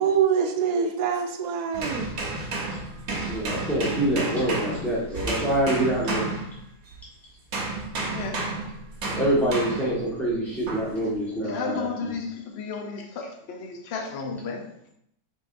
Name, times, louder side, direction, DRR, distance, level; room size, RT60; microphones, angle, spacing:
voice 1, 0.0-2.1, right 7 dB, 85° right, 5 dB, 1.2 m, -24 dB
sound 1, 1.7-7.0 7.5-10.0 10.7-11.0, right 2 dB, 65° right, 1.3 m, -31 dB
voice 2, 3.3-6.2 9.1-12.2, right 1 dB, ahead, -6 dB, 1.1 m, -26 dB
voice 3, 8.1-8.5 9.0-9.1 11.0-11.1 11.4-14.7, left 5 dB, 55° left, 4 dB, 0.7 m, -33 dB
4.6 x 3.6 x 2.5 m, 0.70 s
omnidirectional pair, 1.6 m